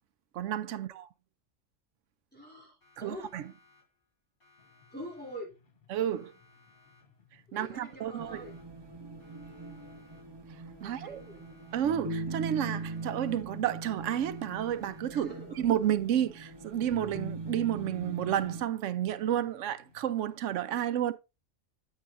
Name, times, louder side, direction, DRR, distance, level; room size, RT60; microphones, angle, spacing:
voice 1, 0.3-1.1 3.0-3.4 5.9-6.3 7.5-8.5 10.8-11.2 11.7-21.1, right 10 dB, 75° right, 0.9 m, -31 dB
voice 2, 2.3-3.3 4.9-5.5 7.5-8.5 10.8-11.4 15.1-15.7, equal, 5° left, 3.0 m, -45 dB
Siren, 2.8-4.1 4.4-5.7 6.0-7.3 7.6-8.9 9.2-10.5 10.8-12.1 12.4-13.7 14.0-15.3, left 3 dB, 70° left, 3.9 m, -64 dB
sound 1, 4.6-20.6, left 5 dB, 50° left, 1.2 m, -65 dB
sound 2, 8.2-18.6, right 3 dB, 25° right, 0.7 m, -41 dB
9.3 x 8.2 x 2.5 m
omnidirectional pair, 1.3 m